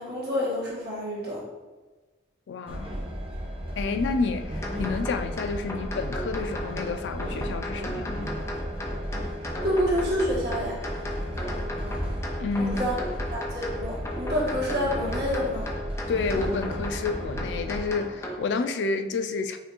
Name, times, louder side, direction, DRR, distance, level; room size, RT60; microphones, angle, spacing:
voice 1, 0.0-1.4 9.6-10.8 12.6-13.0 13.3-15.7, equal, 65° right, -6 dB, 1.4 m, -28 dB
voice 2, 2.5-2.9 3.8-8.3 12.4-12.8 16.1-19.6, left 4 dB, 90° left, 8 dB, 0.3 m, -29 dB
Train, 2.7-17.8, equal, 30° right, 0.7 m, -34 dB
sound 1, 4.6-18.3, left 1 dB, 15° left, 0.4 m, -36 dB
5.5 x 2.5 x 3.0 m, 1.3 s
head